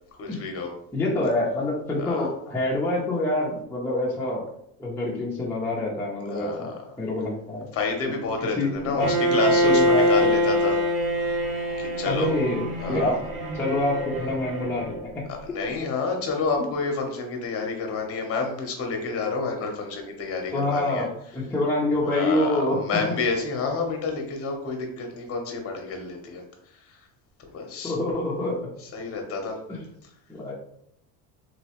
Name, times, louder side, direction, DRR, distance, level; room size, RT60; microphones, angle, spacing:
voice 1, 0.2-0.7 2.0-2.3 6.3-6.8 7.7-10.8 11.8-12.3 12.8-13.2 15.3-21.1 22.0-26.4 26.7-27.1 27.5-27.9 28.8-29.6, left 4 dB, 35° left, 3 dB, 0.8 m, -29 dB
voice 2, 0.9-4.4 4.8-7.7 8.6-8.7 9.0-9.1 9.6-10.1 12.1-13.2 13.5-15.2 20.5-22.8 23.1-23.2 27.8-28.7 29.7-29.8 30.3-30.5, left 1 dB, 5° left, -5 dB, 0.5 m, -26 dB
Bowed string instrument, 9.0-15.0, equal, 50° right, 1.4 m, -24 dB
3.1 x 2.9 x 2.9 m, 0.73 s
cardioid pair, 140°, 39 cm